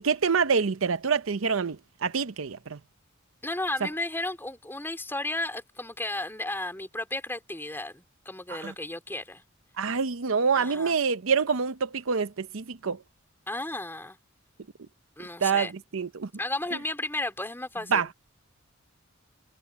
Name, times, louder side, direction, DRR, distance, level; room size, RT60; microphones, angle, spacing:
voice 1, 0.0-2.8 8.6-8.7 9.8-13.0 15.4-16.3 17.9-18.1, right 5 dB, 80° right, 0.7 m, -26 dB
voice 2, 3.4-9.4 10.5-11.0 13.5-14.2 15.2-15.7 16.4-18.1, left 2 dB, 10° left, 4.3 m, -33 dB
head